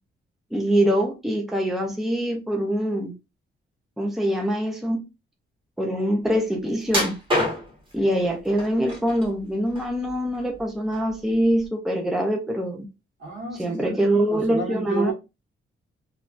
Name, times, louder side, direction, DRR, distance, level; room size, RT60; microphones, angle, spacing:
voice 1, 0.5-3.1 4.0-5.0 5.8-7.1 7.9-12.8 13.6-15.1, equal, ahead, 0.5 m, -24 dB
sound 1, 6.9-7.9 8.6-9.3 9.7-10.6 10.9-11.1 11.6-11.7, left 1 dB, 25° right, 1.3 m, -26 dB
voice 2, 13.2-15.1, right 3 dB, 65° right, 1.5 m, -32 dB
3.2 x 2.3 x 2.5 m
cardioid pair, 130°, 21 cm